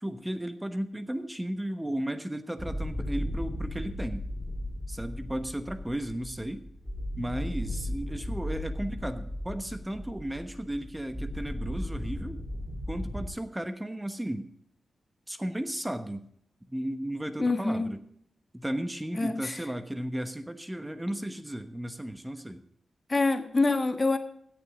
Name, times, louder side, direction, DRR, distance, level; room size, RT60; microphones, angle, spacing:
voice 1, 0.0-4.2 4.9-6.7 7.2-12.4 12.9-14.5 15.3-16.2 16.7-18.0 18.5-22.6, right 1 dB, 15° right, 9 dB, 1.1 m, -34 dB
sound 1, 2.6-13.3, left 1 dB, 10° left, 3.5 m, -36 dB
voice 2, 17.4-17.8 19.1-19.6 23.1-24.2, left 3 dB, 40° left, 7 dB, 1.4 m, -26 dB
16.0 x 7.1 x 5.1 m, 0.68 s
supercardioid pair, 40°, 0 cm